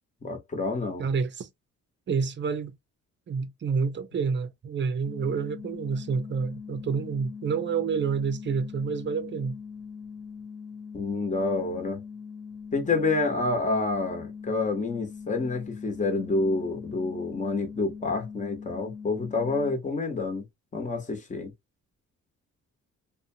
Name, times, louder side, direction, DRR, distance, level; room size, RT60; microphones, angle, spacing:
voice 1, 0.2-1.1 10.9-12.0 12.7-20.4 20.7-21.5, left 3 dB, 25° left, 1.1 m, -28 dB
voice 2, 1.0-1.5 2.1-2.8 3.3-9.6, right 5 dB, 40° right, 0.7 m, -28 dB
sound 1, 5.1-19.8, left 6 dB, 5° left, 0.6 m, -41 dB
2.5 x 2.3 x 2.6 m
cardioid pair, 90°, 30 cm